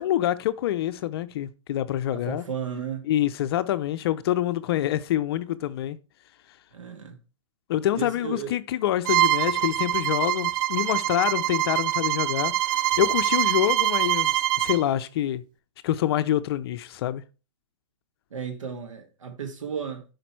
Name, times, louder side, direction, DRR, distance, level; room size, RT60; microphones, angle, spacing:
voice 1, 0.0-2.4 3.1-6.0 7.7-15.4 15.8-17.2, left 12 dB, 50° left, 0.5 m, -26 dB
voice 2, 2.1-3.1 6.7-7.2 7.9-8.5 18.3-20.0, right 7 dB, 80° right, 1.5 m, -34 dB
Bowed string instrument, 9.1-14.8, right 14 dB, 40° right, 0.4 m, -24 dB
5.8 x 5.1 x 4.5 m
hypercardioid pair, 130°, 16 cm